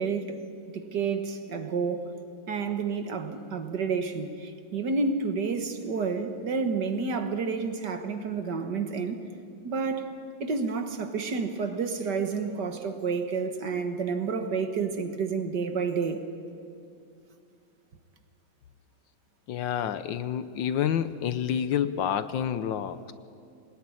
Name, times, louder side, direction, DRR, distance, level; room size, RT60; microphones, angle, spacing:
voice 1, 0.0-2.1 2.5-9.2 9.6-16.2, right 5 dB, 60° right, 7 dB, 2.0 m, -30 dB
voice 2, 19.5-23.1, left 9 dB, 70° left, 13 dB, 1.5 m, -28 dB
22.0 x 19.0 x 9.8 m, 2.5 s
omnidirectional pair, 2.2 m